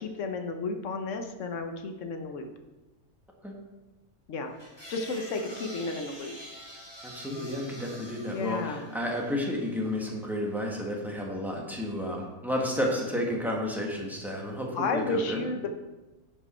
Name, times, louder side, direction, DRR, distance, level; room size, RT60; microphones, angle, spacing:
voice 1, 0.0-2.5 4.3-4.5 4.9-6.3 8.3-8.8 14.8-15.8, left 3 dB, 60° left, 5 dB, 1.1 m, -32 dB
sound 1, 4.6-9.9, equal, 15° left, 2.6 m, -46 dB
voice 2, 7.0-15.4, left 1 dB, ahead, -1 dB, 1.2 m, -31 dB
10.0 x 5.1 x 4.3 m, 1.1 s
omnidirectional pair, 1.6 m